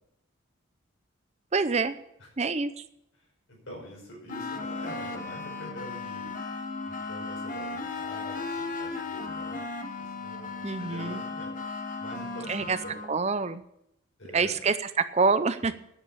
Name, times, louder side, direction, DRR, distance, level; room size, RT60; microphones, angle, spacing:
voice 1, 1.5-2.0 2.4-2.8 10.6-11.2 12.5-12.8 13.1-13.6 14.3-15.8, right 4 dB, 35° right, 12 dB, 0.6 m, -26 dB
voice 2, 3.5-6.3 6.8-9.7 10.0-11.5 12.0-12.9 14.2-14.6, left 1 dB, 70° left, 0 dB, 5.4 m, -45 dB
sound 1, 4.3-13.1, left 3 dB, 40° left, 1.3 m, -36 dB
10.0 x 8.2 x 8.3 m, 0.78 s
head